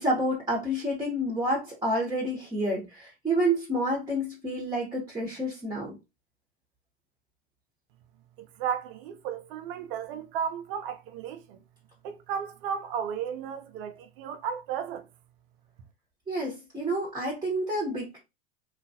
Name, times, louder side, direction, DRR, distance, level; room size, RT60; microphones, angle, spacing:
voice 1, 0.0-6.0 16.3-18.2, right 1 dB, 10° right, 1.1 m, -29 dB
voice 2, 8.4-11.6 12.0-15.1, right 8 dB, 60° right, 0.7 m, -34 dB
3.0 x 2.4 x 2.7 m
hypercardioid pair, 100°, 32 cm